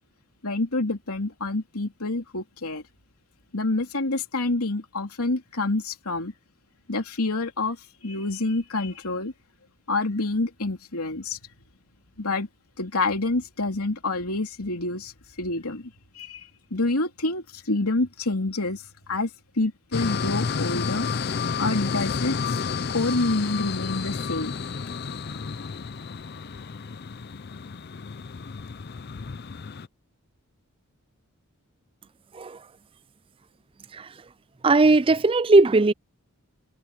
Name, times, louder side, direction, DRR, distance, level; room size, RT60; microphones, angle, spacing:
voice 1, 0.4-2.8 3.5-6.3 6.9-7.8 8.0-9.3 9.9-11.4 12.2-12.5 12.8-15.1 15.4-18.8 19.1-19.3 19.6-21.1 21.6-22.6 22.9-24.6, left 2 dB, 85° left, 3.1 m, -27 dB
sound 1, 19.9-29.9, left 5 dB, 45° left, 0.5 m, -31 dB
voice 2, 34.6-35.9, right 3 dB, 25° right, 0.4 m, -18 dB
head